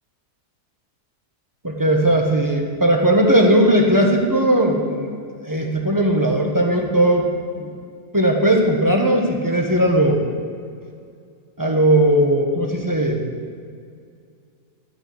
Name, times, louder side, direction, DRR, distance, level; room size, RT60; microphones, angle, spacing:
voice 1, 1.6-5.1 5.4-7.3 7.5-7.7 8.1-10.3 11.6-13.2, right 1 dB, 15° right, 0 dB, 1.2 m, -18 dB
12.0 x 6.0 x 8.6 m, 2.3 s
omnidirectional pair, 1.8 m